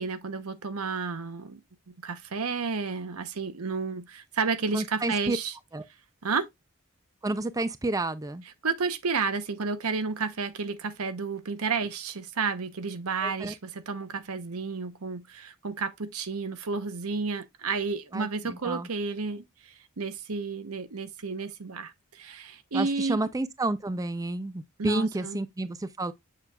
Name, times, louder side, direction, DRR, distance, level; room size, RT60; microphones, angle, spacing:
voice 1, 0.0-1.6 2.0-5.5 6.2-6.5 8.6-23.3 24.8-25.4, right 4 dB, 80° right, 0.9 m, -31 dB
voice 2, 4.7-5.4 5.7-5.8 7.2-8.4 13.2-13.5 18.1-18.9 22.7-26.1, right 2 dB, 15° right, 0.4 m, -30 dB
7.1 x 6.8 x 2.3 m
head